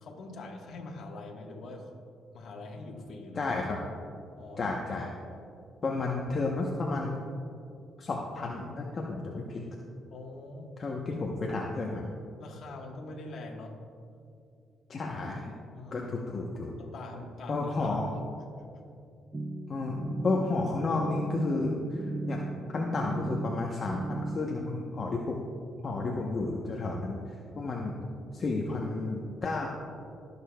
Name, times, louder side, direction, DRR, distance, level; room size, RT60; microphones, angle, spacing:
voice 1, 0.0-1.9 2.3-3.5 4.4-4.7 10.1-10.7 11.1-11.3 12.4-13.8 15.7-16.1 16.8-18.0, left 2 dB, 65° left, 0 dB, 1.3 m, -43 dB
voice 2, 3.4-3.8 4.6-5.1 5.8-7.1 8.0-9.6 10.8-12.1 14.9-15.5 15.9-16.7 17.5-18.1 19.7-21.7 22.3-22.4 22.7-25.4 25.8-27.2 27.5-28.0 28.3-29.7, left 3 dB, 45° left, -1 dB, 0.9 m, -32 dB
sound 1, 19.3-24.4, right 2 dB, 30° right, 0.4 m, -36 dB
20.0 x 6.7 x 2.3 m, 2.4 s
cardioid pair, 90°, 0 cm